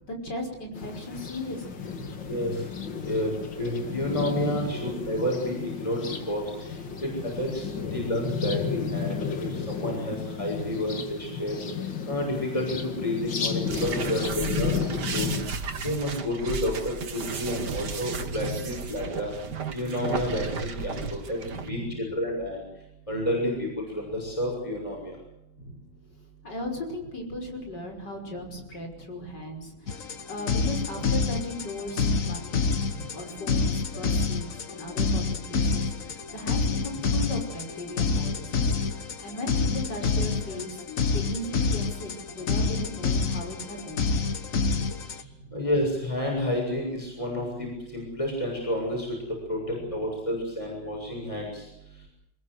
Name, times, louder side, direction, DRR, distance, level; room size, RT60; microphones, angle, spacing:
voice 1, 0.0-2.3 7.7-7.8 10.5-10.9 18.1-18.8 20.8-21.1 21.5-22.0 25.6-25.8 26.4-40.8 41.1-44.1 45.2-45.6 49.8-49.9, left 1 dB, 70° left, 3 dB, 6.3 m, -37 dB
sound 1, 0.7-15.5, left 6 dB, 85° left, 2.9 m, -33 dB
voice 2, 3.6-6.4 7.0-7.1 7.4-7.6 7.9-11.6 12.1-15.3 15.8-19.3 19.7-22.6 23.1-25.1 45.5-49.1 49.5-51.6, left 1 dB, 15° left, -1 dB, 7.2 m, -30 dB
sound 2, 13.7-21.7, right 5 dB, 65° right, 2.4 m, -34 dB
sound 3, 29.9-45.2, left 4 dB, 50° left, 1.7 m, -27 dB
24.5 x 21.5 x 8.1 m, 0.82 s
omnidirectional pair, 1.9 m